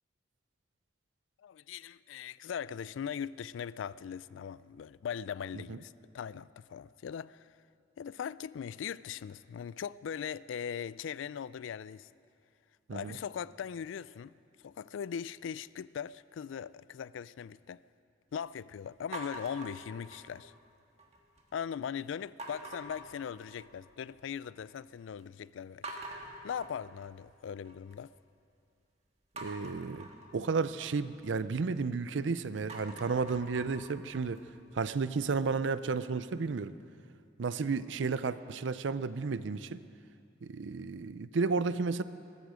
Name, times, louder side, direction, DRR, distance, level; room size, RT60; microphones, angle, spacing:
voice 1, 1.4-7.5 8.0-12.1 12.9-14.3 14.6-17.8 18.3-20.5 21.5-25.9 26.4-28.1, left 7 dB, 85° left, 0.3 m, -40 dB
sound 1, 19.1-20.6 21.0-21.5 22.4-23.9 24.2-24.8 25.2-25.3 25.8-28.0 29.4-32.2 32.5-35.5, right 1 dB, 35° right, 1.6 m, -47 dB
voice 2, 29.4-34.4 34.7-36.7 37.4-39.8 40.4-42.0, right 4 dB, 75° right, 0.5 m, -32 dB
19.5 x 15.0 x 5.0 m
head